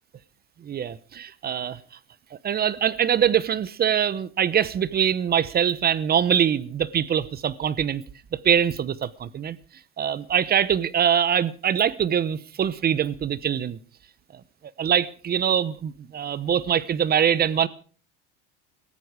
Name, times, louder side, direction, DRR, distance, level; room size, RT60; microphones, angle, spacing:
voice 1, 0.6-1.8 2.3-8.0 8.3-9.6 10.0-13.8 14.8-17.7, right 8 dB, 30° right, 0.9 m, -23 dB
18.5 x 14.0 x 4.9 m
supercardioid pair, 105°, 31 cm